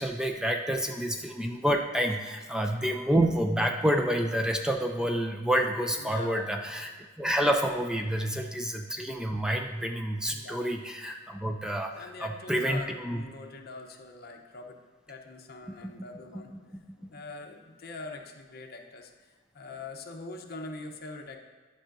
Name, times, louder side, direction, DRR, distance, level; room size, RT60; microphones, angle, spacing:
voice 1, 0.0-6.9 7.2-13.2 15.8-15.9, equal, 5° right, 3 dB, 0.3 m, -28 dB
voice 2, 6.0-6.5 10.3-10.6 11.9-14.8 15.1-19.1 19.5-21.4, left 3 dB, 50° left, 3 dB, 0.7 m, -43 dB
11.5 x 5.5 x 2.6 m, 1.5 s
head